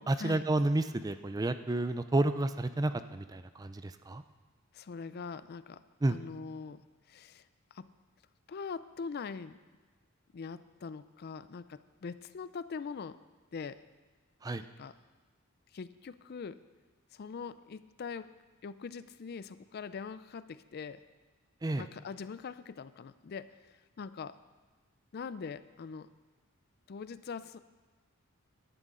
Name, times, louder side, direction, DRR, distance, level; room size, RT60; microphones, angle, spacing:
voice 1, 0.1-4.2 6.0-6.2 14.4-14.6 21.6-21.9, right 2 dB, 15° right, 11 dB, 0.4 m, -30 dB
voice 2, 4.7-5.8 6.1-6.8 7.1-7.4 7.7-7.9 8.5-9.6 10.3-13.2 13.5-13.8 14.6-14.9 15.7-16.6 17.1-18.3 18.6-21.0 21.7-24.4 25.1-26.1 26.9-27.6, left 5 dB, 50° left, 14 dB, 0.4 m, -42 dB
16.0 x 11.5 x 3.8 m, 1.3 s
head